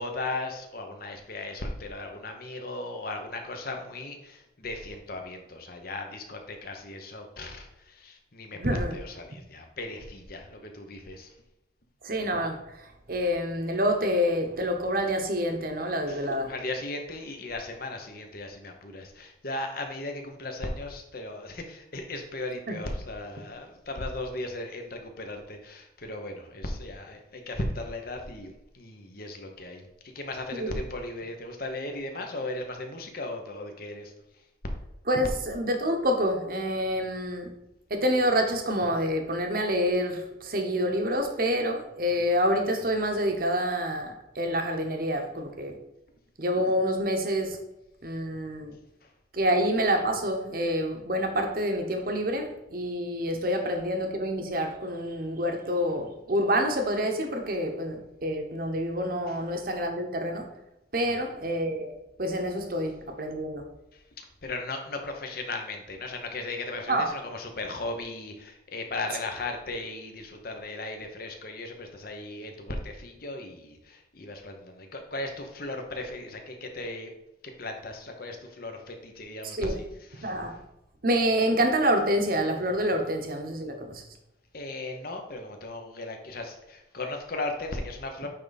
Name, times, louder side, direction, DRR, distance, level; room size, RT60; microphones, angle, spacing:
voice 1, 0.0-11.3 16.1-29.8 30.1-34.1 49.0-49.1 59.3-59.4 61.1-61.2 64.2-77.1 77.6-80.5 84.5-88.3, left 2 dB, 50° left, 4 dB, 1.0 m, -37 dB
voice 2, 8.5-8.9 12.0-12.6 13.1-16.5 22.7-22.8 30.5-30.7 35.1-37.5 37.9-45.8 46.4-47.6 48.0-48.8 49.3-60.5 60.9-63.6 66.9-67.1 79.4-79.8 80.2-80.6 81.0-84.0, equal, 50° right, 4 dB, 1.0 m, -27 dB
9.0 x 3.6 x 4.1 m, 0.92 s
head